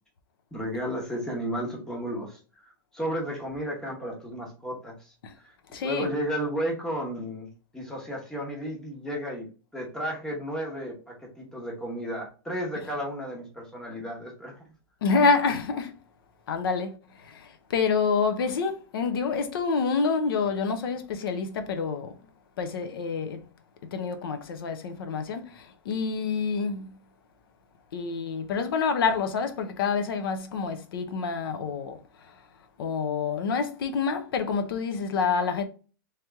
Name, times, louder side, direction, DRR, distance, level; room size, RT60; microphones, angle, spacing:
voice 1, 0.5-5.1 5.8-9.5 9.7-14.6, equal, 5° left, 0.9 m, -33 dB
voice 2, 5.7-6.1 15.0-15.9 16.5-16.9 17.3-22.1 22.6-23.4 23.9-26.9 27.9-32.0 32.8-35.6, left 5 dB, 85° left, 0.7 m, -27 dB
3.3 x 2.9 x 3.5 m
supercardioid pair, 170°, 12 cm